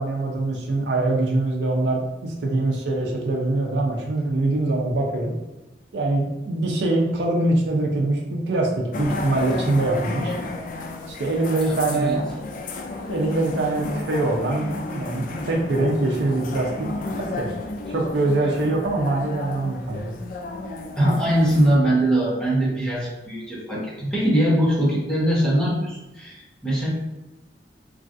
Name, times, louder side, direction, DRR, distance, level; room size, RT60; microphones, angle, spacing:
voice 1, 0.0-5.3 5.9-10.3 11.1-12.2 13.1-16.9 17.2-17.5 17.9-20.1, right 2 dB, 75° right, 0 dB, 0.5 m, -23 dB
sound 1, 8.9-21.8, left 2 dB, 50° left, 0.3 m, -33 dB
voice 2, 11.6-12.2 21.0-26.9, right 1 dB, 5° left, -7 dB, 0.9 m, -22 dB
3.1 x 2.5 x 2.6 m, 1.0 s
head